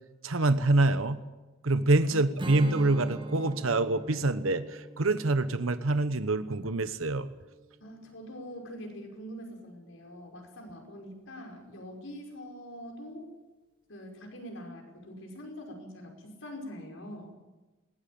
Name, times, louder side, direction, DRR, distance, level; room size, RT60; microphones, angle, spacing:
voice 1, 0.2-1.2 1.6-7.3, right 2 dB, 80° right, 11 dB, 1.1 m, -26 dB
Strum, 2.4-7.7, right 1 dB, 25° right, 1.3 m, -41 dB
voice 2, 7.8-13.3 13.9-17.3, equal, 70° left, 2 dB, 5.7 m, -44 dB
21.0 x 19.0 x 8.6 m, 1.1 s
head